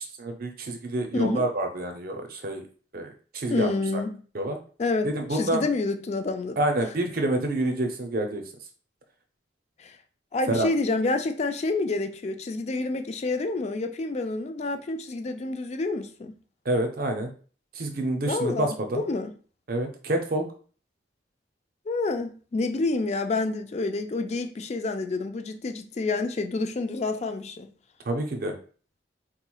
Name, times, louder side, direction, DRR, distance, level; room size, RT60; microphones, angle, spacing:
voice 1, 0.0-2.6 2.9-4.0 4.3-4.6 5.0-5.6 6.6-8.4 10.5-10.7 16.7-17.3 17.7-19.0 19.7-20.4 28.1-28.5, right 1 dB, 50° right, 0.5 m, -28 dB
voice 2, 1.1-1.5 3.5-4.2 4.8-6.6 9.8-9.9 10.3-16.3 18.3-19.3 21.9-27.7, left 3 dB, 35° left, 0.3 m, -28 dB
3.8 x 3.0 x 2.3 m
head